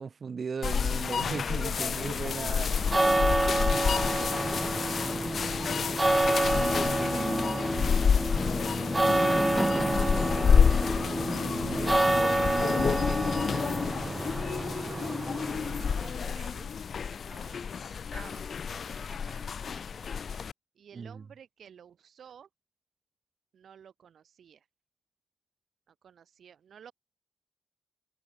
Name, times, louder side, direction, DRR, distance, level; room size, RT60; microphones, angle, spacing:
voice 1, 0.0-3.5 6.7-7.4 10.8-12.0 12.4-13.8 20.9-21.2, right 5 dB, 55° right, 6.0 m, -39 dB
sound 1, 0.6-20.5, left 6 dB, 65° left, 0.5 m, -29 dB
sound 2, 2.7-16.2, right 2 dB, 20° right, 0.9 m, -29 dB
voice 2, 3.8-5.7 6.9-8.9 14.0-16.8 17.2-20.1 20.8-22.5 23.5-24.7 25.9-26.9, right 8 dB, 75° right, 4.2 m, -53 dB
sound 3, 6.5-13.9, left 4 dB, 45° left, 3.1 m, -35 dB
cardioid pair, 75°, 0 cm